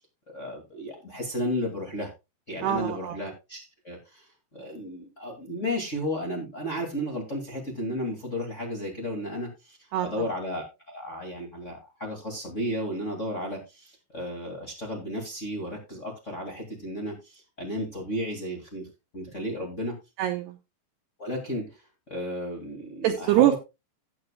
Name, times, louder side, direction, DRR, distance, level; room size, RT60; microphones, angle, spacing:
voice 1, 0.3-2.1 2.5-18.9 19.1-19.9 21.2-21.8 22.1-23.5, equal, 40° left, 0 dB, 1.1 m, -33 dB
voice 2, 2.6-3.2 9.9-10.1 20.2-20.6 23.0-23.6, right 13 dB, 90° right, 5 dB, 2.3 m, -23 dB
15.0 x 8.6 x 2.3 m, 0.24 s
omnidirectional pair, 5.8 m